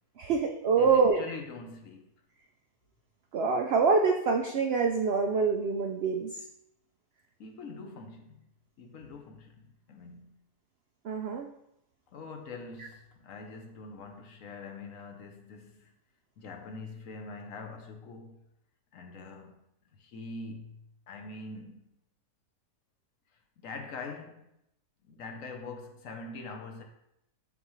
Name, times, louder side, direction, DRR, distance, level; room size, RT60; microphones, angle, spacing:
voice 1, 0.2-1.2 3.3-6.4 11.0-11.5 12.8-12.9, right 4 dB, 85° right, 3 dB, 0.5 m, -26 dB
voice 2, 0.8-2.1 7.4-8.5 8.8-10.4 12.1-15.9 16.4-18.4 18.9-19.6 19.9-21.9 23.6-24.5 25.0-26.8, left 3 dB, 60° left, 4 dB, 1.1 m, -44 dB
9.5 x 3.6 x 3.1 m, 0.80 s
omnidirectional pair, 1.7 m